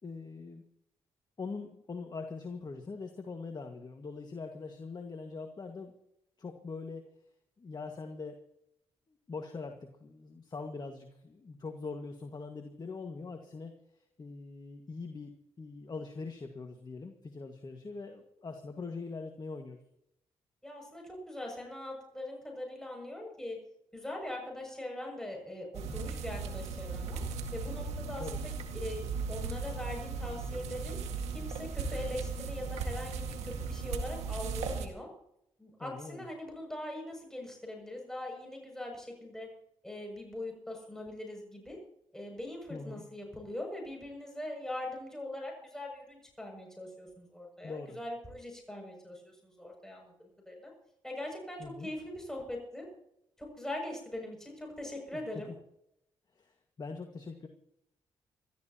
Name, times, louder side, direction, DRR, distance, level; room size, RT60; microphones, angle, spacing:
voice 1, 0.0-0.6 1.4-5.9 6.4-7.1 7.6-8.4 9.1-13.8 14.2-19.8 28.2-28.4 35.8-36.3 42.7-43.0 47.6-48.0 51.6-51.9 55.1-55.4 56.4-57.5, left 4 dB, 40° left, 5 dB, 1.9 m, -42 dB
voice 2, 20.6-23.6 23.9-27.2 27.5-28.5 28.8-31.0 31.3-35.1 35.6-39.5 39.8-41.8 42.1-50.7 51.0-52.9 53.4-55.5, left 1 dB, 5° left, 0 dB, 7.2 m, -41 dB
sound 1, 25.7-34.9, right 5 dB, 90° right, 1.9 m, -37 dB
26.0 x 13.5 x 3.0 m, 0.78 s
cardioid pair, 65°, 11 cm